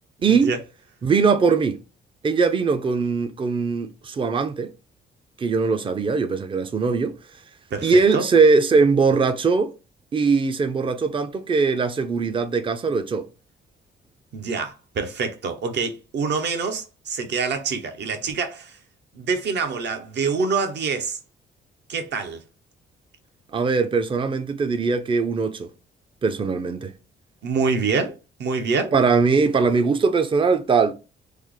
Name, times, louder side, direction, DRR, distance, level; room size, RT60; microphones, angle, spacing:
voice 1, 0.2-0.6 7.7-8.3 14.3-18.8 19.1-21.2 21.9-22.4 27.4-28.9, right 4 dB, 60° right, 0.8 m, -26 dB
voice 2, 1.0-1.8 2.2-4.7 5.4-7.1 7.8-9.7 10.1-13.3 23.5-25.7 26.2-26.9 28.9-30.9, right 4 dB, 25° right, 0.5 m, -20 dB
3.2 x 2.0 x 3.7 m
cardioid pair, 90°, 20 cm